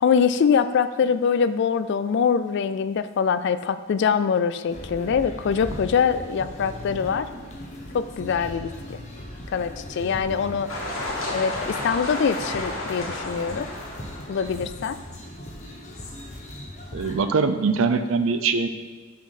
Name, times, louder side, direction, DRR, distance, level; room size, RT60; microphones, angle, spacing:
voice 1, 0.0-7.3 7.9-9.0 9.5-10.7 11.3-13.7 14.3-15.0, left 6 dB, 60° left, 13 dB, 0.3 m, -23 dB
sound 1, 4.7-17.2, left 1 dB, 35° left, 0.9 m, -38 dB
sound 2, 10.7-14.4, left 2 dB, 80° left, 1.8 m, -32 dB
voice 2, 16.9-18.7, right 4 dB, 80° right, 9 dB, 0.5 m, -22 dB
6.1 x 5.9 x 4.1 m, 1.4 s
head